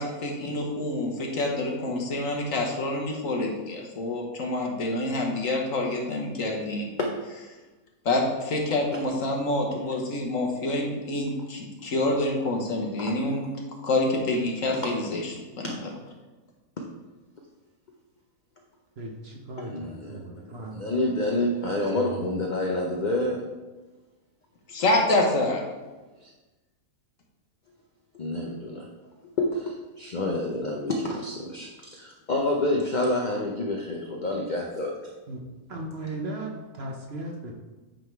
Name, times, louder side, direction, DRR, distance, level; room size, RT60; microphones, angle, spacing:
voice 1, 0.0-6.9 8.0-13.4 13.8-15.7 24.7-25.6, left 2 dB, 65° left, 0 dB, 1.5 m, -27 dB
voice 2, 19.0-20.8 21.9-22.4 35.3-35.4 35.7-37.5, right 2 dB, 50° right, 1 dB, 0.9 m, -37 dB
voice 3, 19.6-23.5 26.2-26.3 28.1-28.9 29.4-34.9, left 2 dB, 45° left, 0 dB, 0.6 m, -28 dB
8.9 x 3.8 x 4.5 m, 1.2 s
omnidirectional pair, 1.5 m